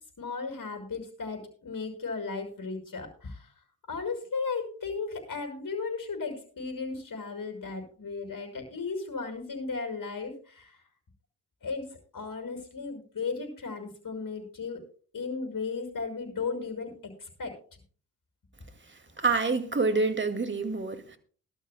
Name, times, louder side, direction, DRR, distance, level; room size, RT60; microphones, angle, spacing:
voice 1, 0.2-3.5 3.9-10.8 11.6-14.8 15.1-17.6, left 4 dB, 50° left, 5.7 m, -35 dB
voice 2, 19.2-21.2, right 3 dB, 25° right, 2.2 m, -27 dB
21.0 x 12.5 x 2.2 m
hypercardioid pair, 45°, 42 cm